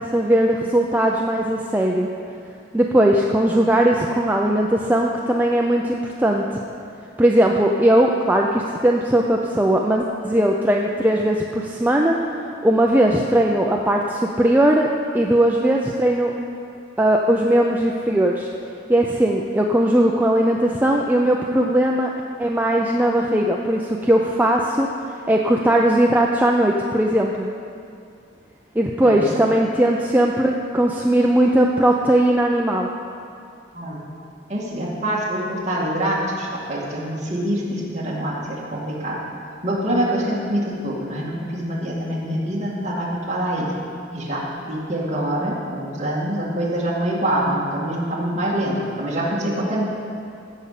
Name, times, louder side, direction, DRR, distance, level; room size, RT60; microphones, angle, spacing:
voice 1, 0.0-2.1 2.7-6.4 7.2-12.2 12.6-14.9 15.1-16.3 17.0-18.5 18.9-22.1 22.4-24.9 25.3-27.5 28.8-32.9, right 1 dB, 10° right, 0 dB, 0.5 m, -19 dB
voice 2, 34.5-39.2 39.6-43.7 44.1-49.8, right 1 dB, 35° right, -5 dB, 2.2 m, -25 dB
15.5 x 5.4 x 6.6 m, 2.4 s
head